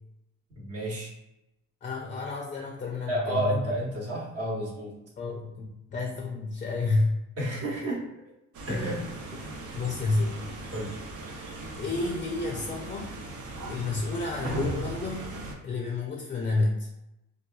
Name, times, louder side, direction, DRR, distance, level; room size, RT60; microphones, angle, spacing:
voice 1, 0.5-1.1 3.1-4.9 7.4-8.0 8.7-9.1 10.7-11.0, right 1 dB, 50° right, -3 dB, 1.0 m, -30 dB
voice 2, 1.8-3.6 5.2-7.2 9.7-10.4 11.8-13.1 13.7-15.3 15.6-16.9, left 3 dB, 25° left, 0 dB, 0.4 m, -30 dB
sound 1, 8.5-15.5, right 2 dB, 75° right, 0.6 m, -37 dB
2.9 x 2.3 x 2.3 m, 0.90 s
cardioid pair, 90°, 30 cm